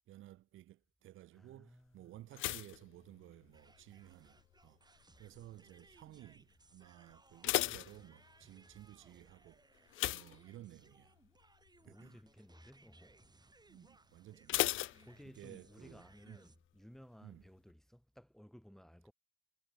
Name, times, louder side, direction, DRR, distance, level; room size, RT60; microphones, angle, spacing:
voice 1, 0.1-11.2 11.8-12.2 13.7-15.1 15.3-16.4 17.2-17.5, right 14 dB, 85° right, 2.0 m, -56 dB
voice 2, 1.3-2.1 11.8-13.3 15.0-19.1, equal, ahead, 7.4 m, -58 dB
sound 1, 2.3-3.8 4.1-4.6 5.2-5.6 5.9-6.0 6.4-6.5 7.1-8.6 9.9-11.1 11.4-11.7 12.1-12.2 14.5-15.7 16.0-16.1, left 17 dB, 85° left, 0.5 m, -37 dB
sound 2, 3.5-16.6, right 3 dB, 20° right, 7.0 m, -66 dB
cardioid pair, 90°, 20 cm